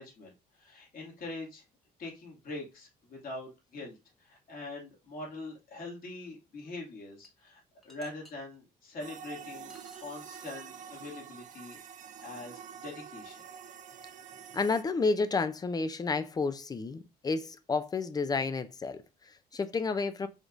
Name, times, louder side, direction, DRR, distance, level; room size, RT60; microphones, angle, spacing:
voice 1, 0.0-1.6 2.0-9.8 10.0-13.4, left 2 dB, 55° left, 2.5 m, -43 dB
sound 1, 7.2-7.3 7.8-8.3 9.7-10.7, left 1 dB, ahead, 1.0 m, -57 dB
sound 2, 9.0-14.8, right 7 dB, 45° right, 0.5 m, -47 dB
voice 2, 14.5-20.3, left 4 dB, 20° left, 0.5 m, -31 dB
5.1 x 3.7 x 2.5 m
cardioid pair, 110°, 17 cm